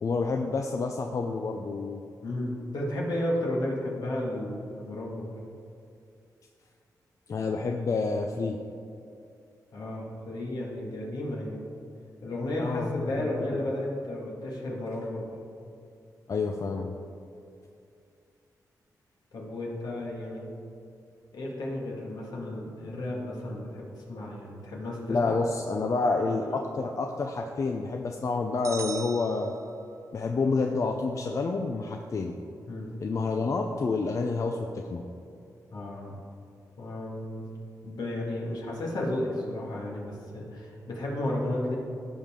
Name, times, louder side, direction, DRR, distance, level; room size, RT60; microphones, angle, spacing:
voice 1, 0.0-2.0 7.3-8.6 12.6-13.6 16.3-16.9 25.1-29.5 30.1-32.3 33.0-35.0, left 3 dB, 50° left, 3 dB, 0.5 m, -29 dB
voice 2, 2.2-5.3 9.7-11.6 12.2-15.4 19.3-20.5 21.3-25.4 26.0-26.6 32.7-32.9 35.7-36.2 36.8-37.5 37.8-41.8, left 1 dB, 75° left, -3 dB, 2.1 m, -33 dB
sound 1, 28.6-30.2, right 5 dB, 45° right, 0.5 m, -41 dB
15.5 x 5.2 x 3.7 m, 2.6 s
cardioid pair, 95°, 7 cm